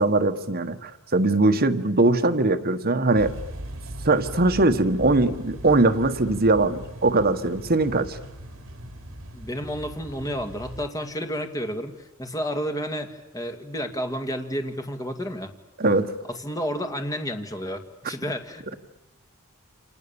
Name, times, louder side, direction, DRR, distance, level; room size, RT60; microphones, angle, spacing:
voice 1, 0.0-3.3 4.0-8.2 15.8-16.1, right 2 dB, 45° right, 7 dB, 1.5 m, -21 dB
sound 1, 3.2-10.9, right 1 dB, 65° right, 3.0 m, -39 dB
voice 2, 9.3-11.9 12.2-15.5 16.3-18.8, equal, 15° left, 5 dB, 2.1 m, -31 dB
29.0 x 27.0 x 7.1 m, 1.0 s
head